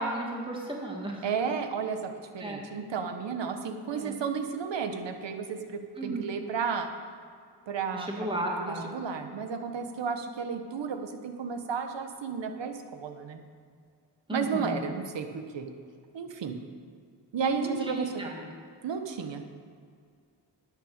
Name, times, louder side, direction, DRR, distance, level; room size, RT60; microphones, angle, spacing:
voice 1, 0.0-1.2 2.4-2.6 3.9-4.2 6.0-6.3 7.9-8.9 14.3-14.9 17.6-18.3, right 1 dB, 10° right, -1 dB, 2.0 m, -34 dB
voice 2, 1.2-6.9 7.7-8.3 8.6-13.4 14.3-15.7 16.1-16.6 17.3-18.3 18.8-19.4, right 6 dB, 85° right, 6 dB, 1.3 m, -33 dB
10.0 x 9.0 x 6.7 m, 2.2 s
cardioid pair, 80°, 42 cm